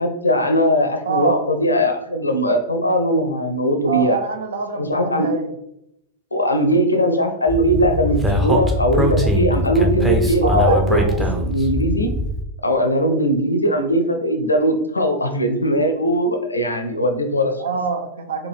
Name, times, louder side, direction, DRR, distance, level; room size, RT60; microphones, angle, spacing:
voice 1, 0.0-4.2 4.7-5.3 6.3-11.0 11.4-12.1 12.6-17.5, equal, 80° left, 5 dB, 0.5 m, -19 dB
voice 2, 1.0-1.4 3.8-5.5 10.4-11.3 17.6-18.5, right 5 dB, 65° right, 6 dB, 0.5 m, -25 dB
Speech, 7.5-12.4, equal, 5° right, 0.6 m, -21 dB
4.4 x 2.2 x 3.2 m, 0.80 s
figure-of-eight pair, 90°, 0 cm